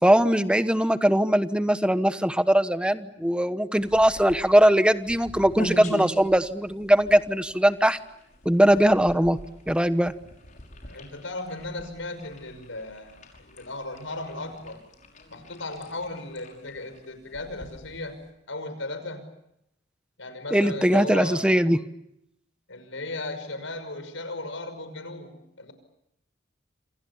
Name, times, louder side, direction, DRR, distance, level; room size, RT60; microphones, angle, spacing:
voice 1, 0.0-8.0 8.4-9.4 9.7-10.1 20.5-21.8, right 1 dB, 5° right, 11 dB, 1.1 m, -20 dB
sound 1, 3.8-18.3, equal, 45° left, 5.8 m, -42 dB
voice 2, 10.9-14.8 15.3-18.2 18.5-19.3 20.2-21.5 22.7-25.7, left 2 dB, 85° left, 10 dB, 5.9 m, -36 dB
27.5 x 27.5 x 7.2 m, 0.81 s
head